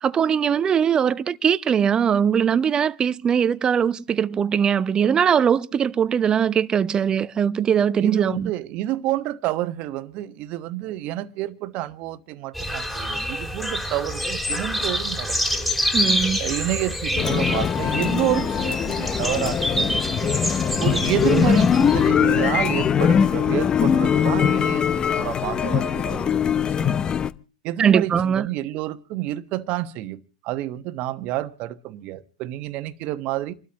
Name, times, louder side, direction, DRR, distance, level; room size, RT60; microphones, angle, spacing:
voice 1, 0.0-8.5 15.9-16.4 27.8-28.5, right 8 dB, 25° right, 0.7 m, -21 dB
voice 2, 8.0-15.7 16.4-20.4 20.8-27.0 27.6-33.5, right 15 dB, 45° right, 1.2 m, -29 dB
sound 1, 12.5-22.1, equal, 5° left, 3.6 m, -27 dB
sound 2, 17.2-27.3, left 8 dB, 25° left, 0.7 m, -21 dB
29.0 x 12.5 x 2.9 m
hypercardioid pair, 95°, 3 cm